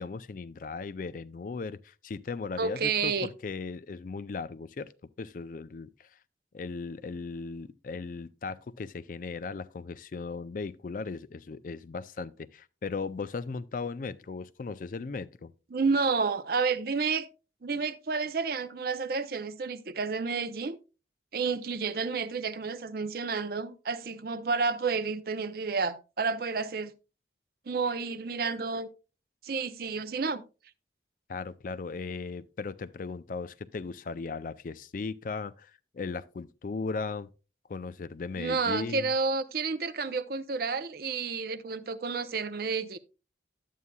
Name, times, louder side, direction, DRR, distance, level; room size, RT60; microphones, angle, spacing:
voice 1, 0.0-4.9 5.2-6.1 6.5-15.5 31.3-37.3 37.7-39.1, left 4 dB, 45° left, 0.4 m, -37 dB
voice 2, 2.6-3.3 15.7-17.3 17.6-20.8 21.3-26.9 27.7-28.9 29.4-30.4 38.4-43.0, right 4 dB, 55° right, 0.5 m, -30 dB
11.0 x 8.3 x 2.2 m
head